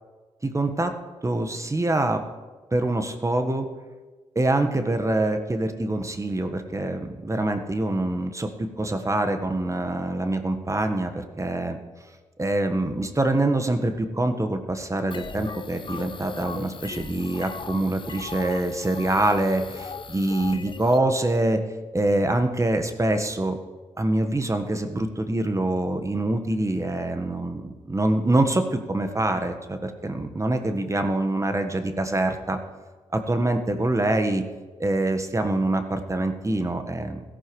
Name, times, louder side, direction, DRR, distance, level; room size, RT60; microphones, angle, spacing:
voice 1, 0.4-0.9 1.2-2.2 2.7-3.7 4.3-11.8 12.4-21.6 21.9-23.6 24.0-32.6 33.1-34.5 34.8-37.2, right 2 dB, 25° right, 7 dB, 1.4 m, -25 dB
sound 1, 15.1-21.0, left 5 dB, 40° left, 0.6 m, -38 dB
17.0 x 14.0 x 3.2 m, 1.3 s
hypercardioid pair, 45°, 13 cm